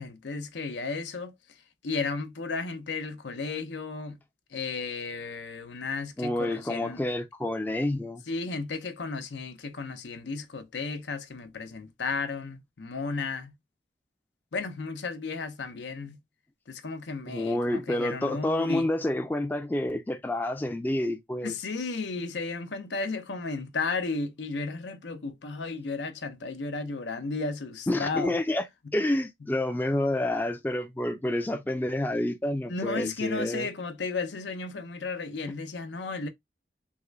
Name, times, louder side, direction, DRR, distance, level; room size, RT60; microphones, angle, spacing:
voice 1, 0.0-1.3 1.8-4.2 4.5-7.0 8.3-13.5 14.5-16.2 16.7-18.9 21.4-28.4 32.7-36.3, left 4 dB, 90° left, 0.6 m, -34 dB
voice 2, 6.2-8.2 17.3-21.6 27.9-28.6 28.9-33.7, left 1 dB, 10° left, 0.3 m, -28 dB
3.6 x 2.1 x 3.2 m
head